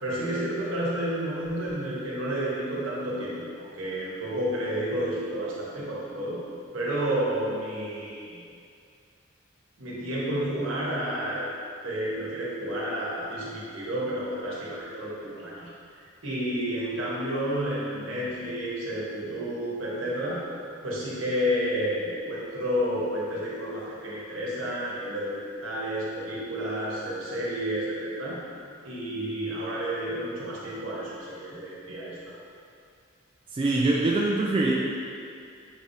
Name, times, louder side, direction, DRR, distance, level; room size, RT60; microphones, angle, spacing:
voice 1, 0.0-6.4 6.7-8.4 9.8-11.6 11.8-15.7 16.0-20.4 20.8-28.4 28.8-32.3, equal, 70° right, -6 dB, 1.1 m, -31 dB
voice 2, 33.5-34.7, right 2 dB, 25° right, -4 dB, 0.3 m, -23 dB
6.0 x 3.3 x 2.7 m, 2.4 s
head